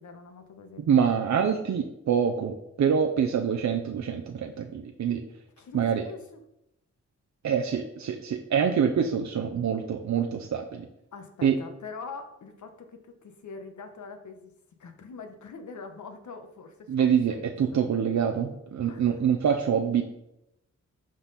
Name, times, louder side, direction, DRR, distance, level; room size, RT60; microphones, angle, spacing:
voice 1, 0.0-0.9 5.6-6.4 11.1-14.5 14.8-17.8 18.8-19.0, left 4 dB, 75° left, 6 dB, 1.2 m, -44 dB
voice 2, 0.9-5.2 5.7-6.1 7.4-10.9 11.4-11.6 16.9-20.0, right 7 dB, 70° right, 4 dB, 0.7 m, -25 dB
11.5 x 4.0 x 4.1 m, 0.84 s
wide cardioid pair, 100°, 29 cm